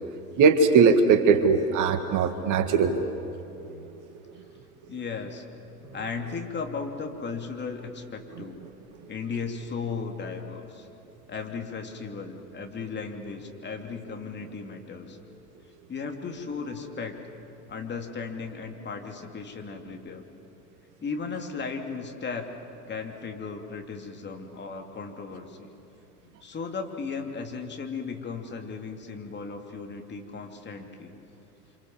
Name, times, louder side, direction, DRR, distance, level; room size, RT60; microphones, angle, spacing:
voice 1, 0.4-3.0, right 5 dB, 40° right, 8 dB, 2.0 m, -20 dB
voice 2, 4.9-5.4 5.9-8.6 9.1-10.9 11.3-15.2 15.9-17.2 17.7-20.2 21.0-22.5 22.8-25.7 26.4-31.1, left 5 dB, 25° left, 3 dB, 3.0 m, -36 dB
29.0 x 26.0 x 7.6 m, 2.8 s
figure-of-eight pair, 85°, 46 cm